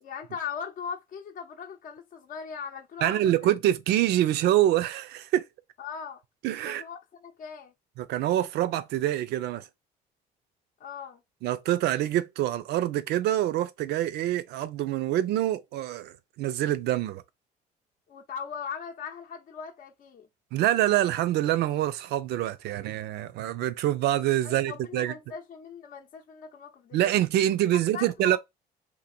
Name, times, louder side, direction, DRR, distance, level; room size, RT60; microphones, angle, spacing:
voice 1, 0.0-3.3 5.8-6.2 6.6-7.7 10.8-11.2 18.1-20.3 24.4-27.0 27.7-28.4, left 7 dB, 50° left, 0.6 m, -39 dB
voice 2, 3.0-5.4 6.4-6.8 8.0-9.7 11.4-17.2 20.5-25.1 26.9-28.4, right 13 dB, 75° right, 0.5 m, -26 dB
2.8 x 2.6 x 4.2 m
cardioid pair, 110°, 17 cm